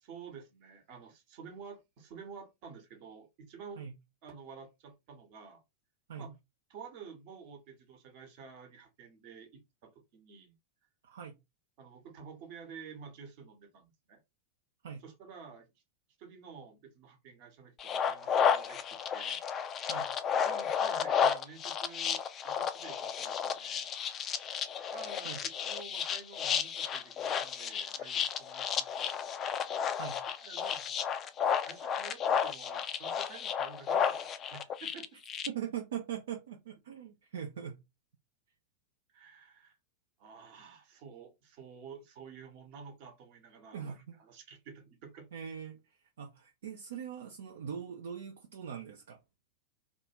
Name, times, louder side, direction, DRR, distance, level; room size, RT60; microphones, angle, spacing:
voice 1, 0.0-3.8 4.2-5.6 6.2-6.3 6.7-10.6 11.8-14.2 15.0-15.7 16.2-18.8 19.1-19.4 20.4-23.8 24.9-29.2 30.4-31.1 31.6-35.1 39.1-39.8 40.2-45.3, right 6 dB, 45° right, 0.9 m, -50 dB
sound 1, 17.8-35.5, left 7 dB, 30° left, 0.3 m, -32 dB
voice 2, 35.5-37.8 43.7-44.2 45.3-49.2, right 8 dB, 60° right, 0.4 m, -41 dB
2.6 x 2.4 x 2.8 m
figure-of-eight pair, 90°, 0 cm